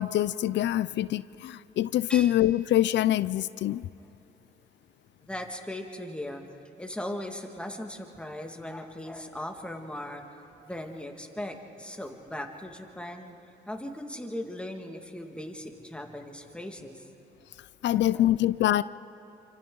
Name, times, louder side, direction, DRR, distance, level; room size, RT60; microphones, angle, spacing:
voice 1, 0.0-3.9 17.8-18.8, left 13 dB, 65° left, 17 dB, 0.4 m, -25 dB
voice 2, 5.2-6.4 6.8-10.2 10.6-13.4 13.7-17.1 17.9-18.3, left 1 dB, 5° left, 3 dB, 1.9 m, -38 dB
28.0 x 25.5 x 3.9 m, 2.9 s
cardioid pair, 90°, 20 cm